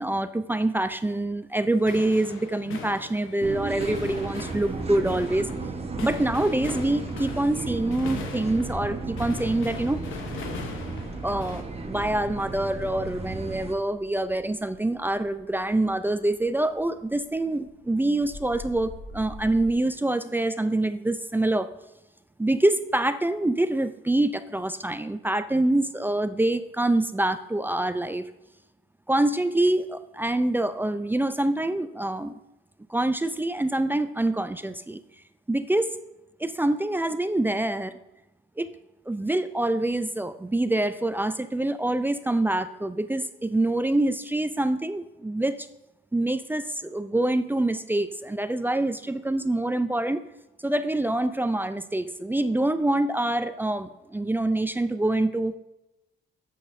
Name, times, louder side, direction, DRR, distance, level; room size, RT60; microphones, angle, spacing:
voice 1, 0.0-5.5 6.0-10.0 11.2-21.7 22.4-28.3 29.1-32.4 32.9-35.0 35.5-35.9 36.4-37.9 38.6-38.7 39.1-45.7 46.1-50.2 50.6-55.5, right 1 dB, 10° right, 10 dB, 0.4 m, -25 dB
sound 1, 1.7-11.6, left 5 dB, 85° left, 1.0 m, -40 dB
sound 2, 3.4-13.8, right 4 dB, 30° right, 1.0 m, -34 dB
sound 3, 13.9-19.7, left 2 dB, 40° left, 1.6 m, -47 dB
10.0 x 7.6 x 2.6 m, 0.95 s
cardioid pair, 90°, 20 cm